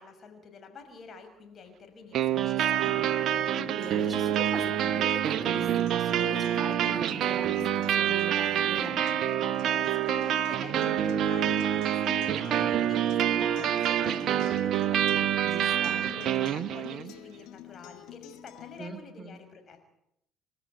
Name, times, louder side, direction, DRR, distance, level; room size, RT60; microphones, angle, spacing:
voice 1, 0.0-3.1 9.9-15.4 15.7-19.9, left 5 dB, 45° left, 7 dB, 5.8 m, -48 dB
sound 1, 2.1-17.1, right 10 dB, 60° right, 0.9 m, -27 dB
Acoustic guitar, 2.8-18.8, left 12 dB, 70° left, 1.4 m, -48 dB
voice 2, 3.8-9.0 15.4-15.9 18.8-19.4, right 3 dB, 25° right, 8 dB, 3.0 m, -42 dB
28.5 x 13.0 x 9.2 m, 0.79 s
hypercardioid pair, 55°, 0 cm